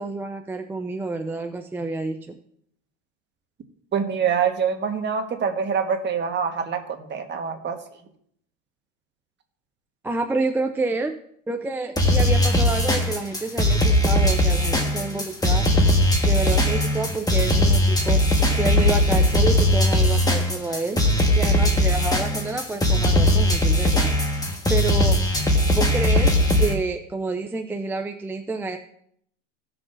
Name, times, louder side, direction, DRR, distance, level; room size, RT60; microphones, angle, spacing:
voice 1, 0.0-2.4 10.0-11.2 11.5-15.6 16.2-18.2 18.5-21.0 21.4-24.1 24.7-25.2 25.7-28.8, right 3 dB, 5° right, 4 dB, 0.3 m, -28 dB
voice 2, 3.9-7.8, right 6 dB, 30° right, 5 dB, 1.4 m, -25 dB
sound 1, 12.0-26.7, left 1 dB, 10° left, 1.5 m, -19 dB
17.0 x 6.1 x 2.6 m, 0.68 s
supercardioid pair, 115°, 37 cm